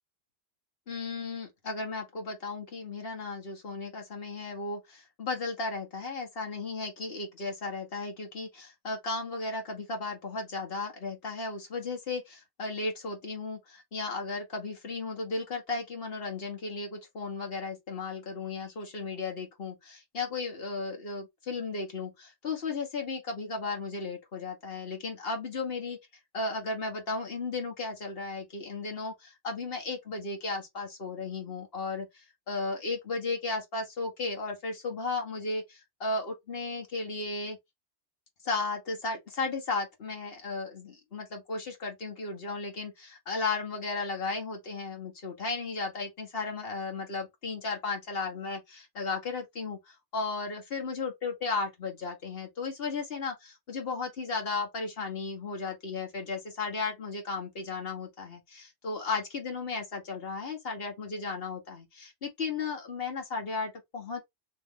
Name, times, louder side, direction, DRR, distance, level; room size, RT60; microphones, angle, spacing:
voice 1, 0.9-26.0 26.3-37.6 38.4-64.2, left 3 dB, 60° left, 1.4 m, -35 dB
3.2 x 3.1 x 3.6 m
omnidirectional pair, 1.2 m